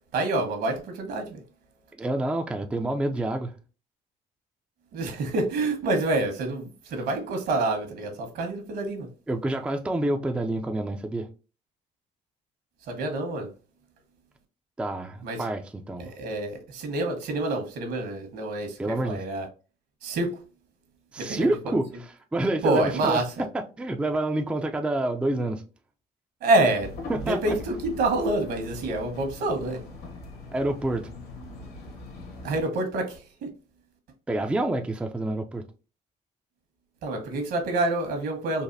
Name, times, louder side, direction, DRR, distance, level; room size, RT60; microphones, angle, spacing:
voice 1, 0.1-1.4 4.9-9.1 12.9-13.5 15.2-15.4 16.0-19.5 20.0-20.4 21.2-21.5 22.6-23.3 26.4-26.9 27.3-29.8 32.4-33.5 37.0-38.6, right 2 dB, 70° right, 1.2 m, -27 dB
voice 2, 2.0-3.5 9.3-11.3 14.8-16.1 18.8-19.2 21.1-23.2 23.5-25.6 27.1-27.4 30.5-31.1 34.3-35.6, right 1 dB, 5° right, 0.3 m, -28 dB
sound 1, 26.8-32.6, left 2 dB, 70° left, 1.4 m, -41 dB
4.0 x 2.5 x 2.5 m
cardioid pair, 110°, 17 cm